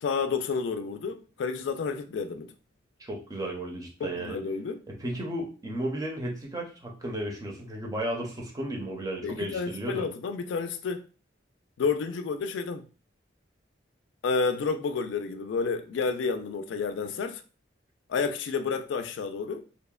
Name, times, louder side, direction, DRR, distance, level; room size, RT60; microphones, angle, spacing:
voice 1, 0.0-2.5 4.0-4.8 9.2-11.0 11.8-12.9 14.2-17.4 18.1-19.6, left 5 dB, 80° left, 0.3 m, -30 dB
voice 2, 3.0-4.4 4.9-10.0, right 1 dB, 20° right, 0.5 m, -34 dB
2.8 x 2.0 x 2.3 m
head